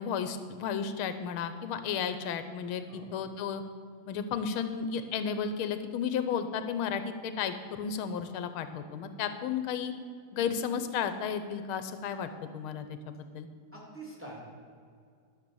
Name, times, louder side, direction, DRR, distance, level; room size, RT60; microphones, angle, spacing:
voice 1, 0.0-3.6 4.1-9.9 10.3-13.5, left 7 dB, 90° left, 10 dB, 1.6 m, -33 dB
voice 2, 13.7-14.4, right 2 dB, 5° right, -3 dB, 3.1 m, -45 dB
12.5 x 6.9 x 7.1 m, 2.2 s
omnidirectional pair, 2.3 m